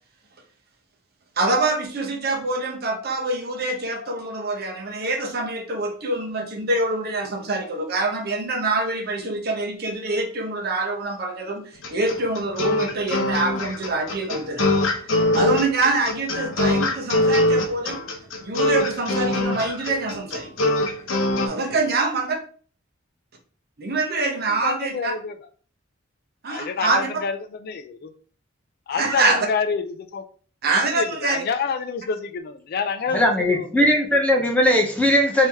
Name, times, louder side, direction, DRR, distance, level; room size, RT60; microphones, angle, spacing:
voice 1, 1.4-14.7 15.3-18.0 18.4-20.5 21.4-22.3 23.8-25.1 26.4-27.1 28.9-29.4 30.6-31.4, right 2 dB, 50° right, 0.8 m, -25 dB
sound 1, 11.8-21.5, left 1 dB, 85° left, 0.8 m, -22 dB
voice 2, 24.6-25.3 26.5-28.1 28.9-30.2 30.9-33.7, left 5 dB, 50° left, 0.3 m, -28 dB
voice 3, 33.1-35.5, left 1 dB, 5° left, 0.6 m, -19 dB
3.1 x 2.8 x 3.4 m
head